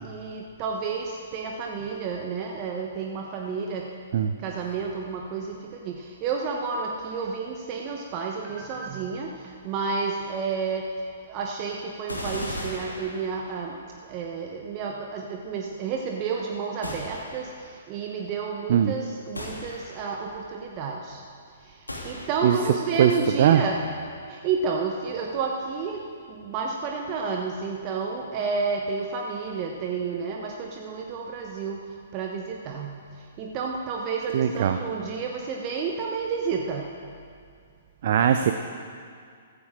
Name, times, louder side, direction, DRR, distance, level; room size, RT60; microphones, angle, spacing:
voice 1, 0.0-1.0 1.3-3.8 4.4-5.5 5.8-5.9 6.2-9.3 9.6-10.8 11.3-13.7 14.1-17.5 17.9-21.2 22.0-23.8 24.3-26.0 26.4-31.8 32.1-32.9 33.4-36.8, right 5 dB, 35° right, 1 dB, 1.1 m, -30 dB
sound 1, 12.1-13.7 16.8-17.7 19.4-20.3 21.9-22.7, left 1 dB, 85° left, 2.9 m, -37 dB
voice 2, 34.3-34.8 38.0-38.5, right 9 dB, 50° right, 7 dB, 0.6 m, -20 dB
14.5 x 14.5 x 3.8 m, 2.2 s
figure-of-eight pair, 120°, 0 cm